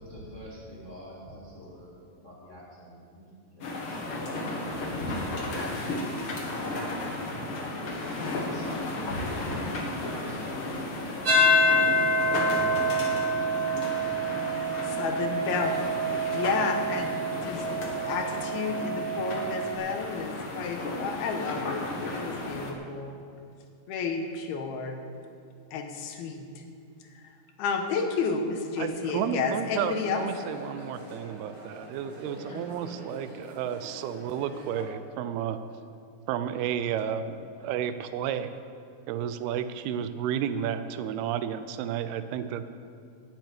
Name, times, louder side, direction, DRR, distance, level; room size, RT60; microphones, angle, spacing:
voice 1, 0.1-1.9 2.2-3.3 3.5-6.0 6.5-6.9 7.2-9.7 10.0-10.5 11.7-13.1, equal, 25° left, -7 dB, 2.0 m, -43 dB
sound 1, 3.6-22.7, left 2 dB, 60° left, 1.4 m, -34 dB
sound 2, 11.2-19.7, equal, 45° right, 2.4 m, -27 dB
voice 2, 14.8-21.8 22.1-23.2 23.9-25.0 25.7-26.6 27.2-27.3 27.6-30.2 32.5-32.7, left 5 dB, 80° left, 4 dB, 3.0 m, -31 dB
sound 3, 28.8-34.8, equal, 15° right, 2.4 m, -44 dB
voice 3, 28.8-35.6 36.3-38.6 39.1-42.7, right 9 dB, 85° right, 11 dB, 2.6 m, -32 dB
10.0 x 9.1 x 8.7 m, 2.4 s
omnidirectional pair, 4.5 m